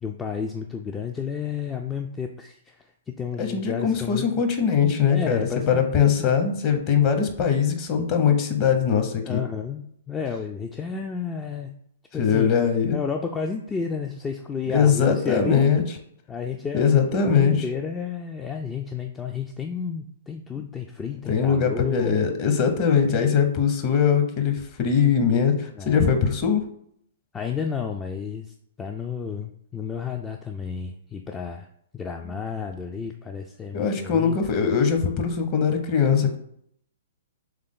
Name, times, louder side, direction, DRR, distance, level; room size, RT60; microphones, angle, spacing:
voice 1, 0.0-4.3 5.1-6.3 9.2-11.7 12.1-12.5 12.9-15.7 16.3-22.2 25.7-26.1 27.3-31.7 31.9-34.4, left 6 dB, 15° left, 3 dB, 0.3 m, -32 dB
voice 2, 3.4-9.4 12.2-13.0 14.7-15.8 16.7-17.6 21.3-26.6 33.7-36.4, left 7 dB, 35° left, 5 dB, 0.8 m, -21 dB
3.5 x 3.3 x 3.8 m, 0.70 s
figure-of-eight pair, 120°, 0 cm